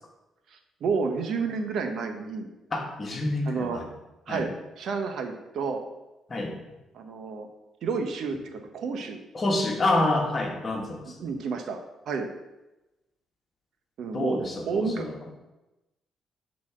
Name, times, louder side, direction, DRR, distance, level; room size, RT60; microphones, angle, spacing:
voice 1, 0.5-2.5 3.5-3.8 4.3-4.5 4.8-5.8 6.9-7.5 7.8-9.2 11.2-11.8 12.1-12.3 14.0-14.4 14.7-15.0, right 5 dB, 70° right, 5 dB, 0.9 m, -30 dB
voice 2, 2.7-3.9 4.3-4.5 6.3-6.5 9.3-11.3 14.1-15.1, left 2 dB, 35° left, 2 dB, 1.5 m, -28 dB
7.5 x 4.1 x 4.9 m, 1.0 s
cardioid pair, 90°, 0 cm